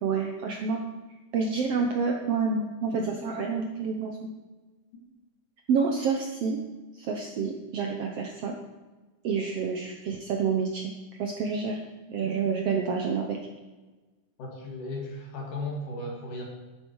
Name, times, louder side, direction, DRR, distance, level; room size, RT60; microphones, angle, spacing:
voice 1, 0.0-0.8 1.3-4.3 5.7-6.6 7.0-8.5 9.2-10.9 11.2-11.8 12.1-13.4, right 5 dB, 70° right, 2 dB, 1.5 m, -28 dB
voice 2, 14.4-16.4, left 2 dB, 70° left, -1 dB, 3.8 m, -35 dB
11.5 x 10.0 x 4.7 m, 1.2 s
omnidirectional pair, 3.8 m